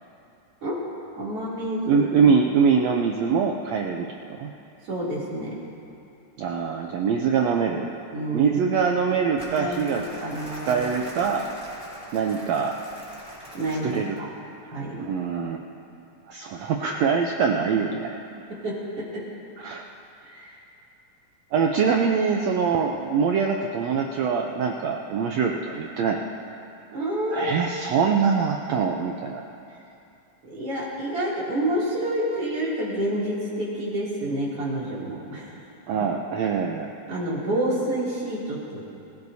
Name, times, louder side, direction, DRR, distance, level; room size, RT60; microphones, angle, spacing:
voice 1, 1.2-2.1 4.8-5.5 8.1-8.8 9.5-10.9 13.5-14.3 14.7-15.0 18.5-19.3 20.3-20.6 26.9-27.6 30.4-35.5 37.1-38.9, right 1 dB, 45° right, -7 dB, 3.6 m, -29 dB
voice 2, 1.9-4.5 6.4-8.0 8.3-10.0 10.7-11.4 12.1-12.7 13.8-14.2 14.9-15.6 16.3-18.2 19.6-19.9 21.5-26.2 27.3-29.4 35.9-36.9, right 6 dB, 80° right, 2 dB, 1.5 m, -23 dB
Crumpling crinkling, 9.3-14.2, equal, 10° right, 4.4 m, -42 dB
24.0 x 15.5 x 2.8 m, 2.7 s
omnidirectional pair, 3.8 m